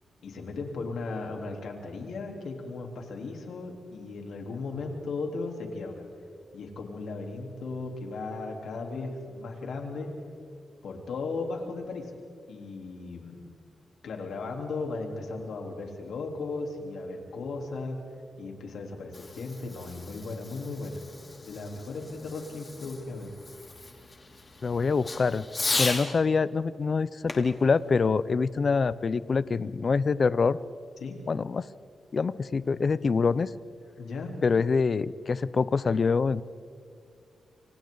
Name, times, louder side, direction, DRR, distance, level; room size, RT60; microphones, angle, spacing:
voice 1, 0.2-6.1 6.5-10.1 10.8-12.1 12.5-13.4 14.0-18.0 18.4-21.0 21.4-23.3 31.0-31.2 34.0-34.4, left 3 dB, 85° left, 1 dB, 3.7 m, -36 dB
Fireworks, 18.8-26.1 27.3-28.9, left 3 dB, 30° left, 3.0 m, -37 dB
voice 2, 24.6-25.4 25.8-30.6 31.3-31.7 32.1-33.5 34.4-36.4, left 4 dB, 45° left, 17 dB, 0.6 m, -25 dB
28.0 x 26.0 x 4.0 m, 2.3 s
cardioid pair, 100°, 0 cm